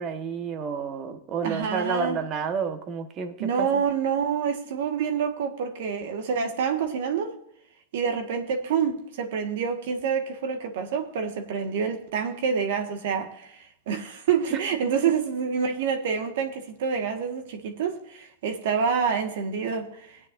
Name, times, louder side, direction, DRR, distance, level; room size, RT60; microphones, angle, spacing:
voice 1, 0.0-3.8 14.5-14.6, right 6 dB, 35° right, 1.4 m, -30 dB
voice 2, 1.4-2.2 3.4-7.3 7.9-20.2, right 6 dB, 70° right, 1.7 m, -27 dB
18.0 x 9.5 x 2.6 m
hypercardioid pair, 125°, 0 cm